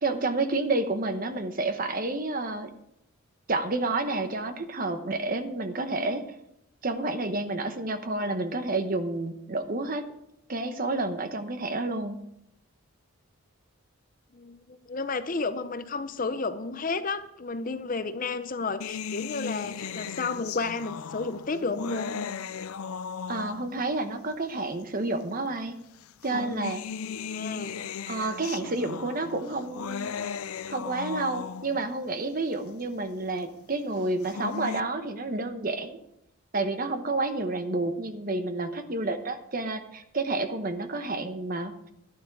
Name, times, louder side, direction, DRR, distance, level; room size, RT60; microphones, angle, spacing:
voice 1, 0.0-2.7 3.5-6.2 6.8-10.0 10.5-12.2 23.3-25.7 26.2-26.8 28.1-30.4 30.7-36.0 36.5-41.9, right 2 dB, 40° right, 8 dB, 1.0 m, -30 dB
voice 2, 14.3-22.2 27.0-27.8, left 4 dB, 40° left, 11 dB, 0.6 m, -32 dB
sound 1, 18.8-23.9 24.8-24.9 26.0-31.9 34.0-34.8, left 6 dB, 80° left, 0.5 m, -36 dB
11.5 x 11.5 x 4.7 m, 0.79 s
head